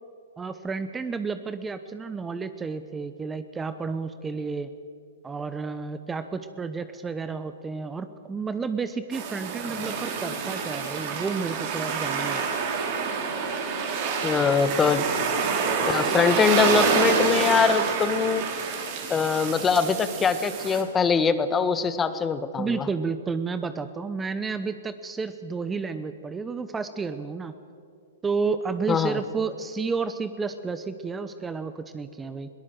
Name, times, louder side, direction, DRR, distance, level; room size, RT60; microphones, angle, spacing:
voice 1, 0.4-4.7 5.2-12.4 22.6-27.6 28.2-32.5, right 4 dB, 15° right, 12 dB, 0.9 m, -31 dB
sound 1, 9.1-20.8, right 5 dB, 45° right, 4.3 m, -27 dB
voice 2, 14.2-15.1 15.8-18.4 19.1-22.9 28.9-29.2, left 5 dB, 15° left, 13 dB, 1.3 m, -23 dB
21.5 x 18.5 x 7.9 m, 2.4 s
hypercardioid pair, 115°, 0 cm